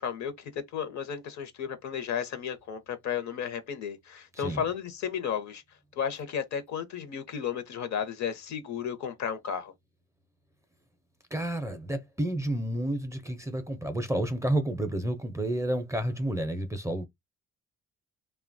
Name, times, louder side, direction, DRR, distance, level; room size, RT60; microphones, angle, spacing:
voice 1, 0.0-5.6 6.0-9.7, left 8 dB, 70° left, 0.7 m, -33 dB
voice 2, 4.3-4.7 11.3-17.1, right 1 dB, 10° right, 0.4 m, -30 dB
2.8 x 2.2 x 2.5 m
cardioid pair, 90°, 30 cm